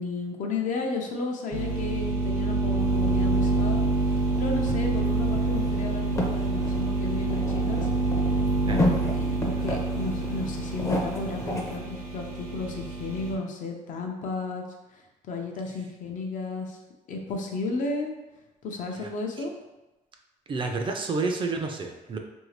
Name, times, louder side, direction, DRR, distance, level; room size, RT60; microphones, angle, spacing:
voice 1, 0.0-7.9 8.6-14.6 14.9-16.8 17.1-18.1 18.6-19.5, left 3 dB, 65° left, 2 dB, 0.6 m, -33 dB
sound 1, 1.5-13.3, right 2 dB, 75° right, 0.7 m, -27 dB
sound 2, 2.8-11.8, equal, 20° left, 0.5 m, -34 dB
voice 2, 20.5-22.2, right 3 dB, 35° right, 3 dB, 0.4 m, -29 dB
2.8 x 2.6 x 3.2 m, 1.0 s
cardioid pair, 105°, 14 cm